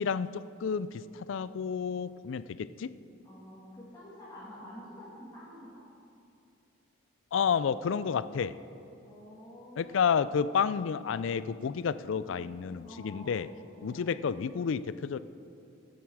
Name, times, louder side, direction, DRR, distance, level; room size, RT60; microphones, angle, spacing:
voice 1, 0.0-2.9 7.3-8.5 9.8-13.5 13.8-15.2, left 6 dB, 75° left, 16 dB, 0.4 m, -30 dB
voice 2, 3.2-5.8 9.0-10.0 12.3-12.6 12.8-13.5 13.7-14.0, equal, 20° left, -9 dB, 2.1 m, -48 dB
13.5 x 9.4 x 4.8 m, 2.7 s
head